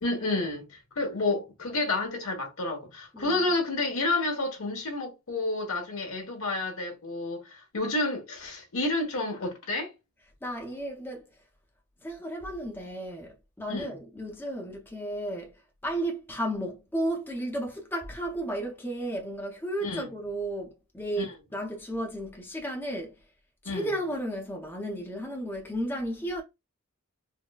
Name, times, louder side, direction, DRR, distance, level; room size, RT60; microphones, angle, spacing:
voice 1, 0.0-9.9 13.7-13.9 19.8-20.1 21.2-21.3 23.6-23.9, left 2 dB, 70° left, 1.2 m, -30 dB
voice 2, 3.1-3.6 10.4-11.3 12.0-23.2 23.6-26.4, right 1 dB, 10° left, 0.6 m, -34 dB
4.0 x 2.1 x 2.3 m
head